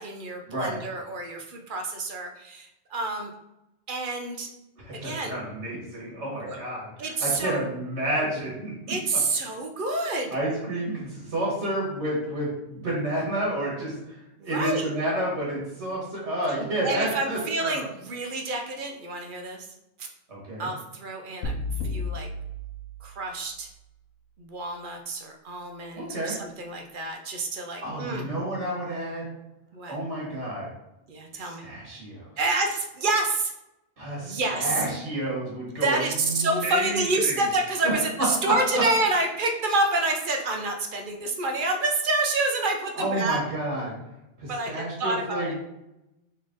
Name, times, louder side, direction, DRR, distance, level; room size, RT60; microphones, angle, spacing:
voice 1, 0.0-3.3 3.9-4.5 4.9-5.4 6.2-6.6 7.0-7.6 8.9-10.4 14.4-14.9 16.8-19.7 20.0-20.1 20.6-21.5 21.8-22.3 23.0-23.7 24.4-28.3 29.7-30.0 31.1-31.7 32.4-33.5 34.2-34.8 35.8-43.4 44.5-45.5, right 2 dB, 55° right, 4 dB, 0.7 m, -28 dB
voice 2, 4.8-9.0 10.3-14.2 14.4-17.8 20.3-20.7 26.0-26.3 27.8-29.3 29.9-30.7 31.3-32.3 34.0-37.4 37.8-37.9 38.4-38.8 43.0-43.9 44.4-45.5, right 1 dB, 85° right, -5 dB, 1.8 m, -30 dB
sound 1, 21.4-23.5, left 2 dB, 85° left, 1.0 m, -33 dB
4.1 x 3.1 x 3.6 m, 0.89 s
omnidirectional pair, 1.2 m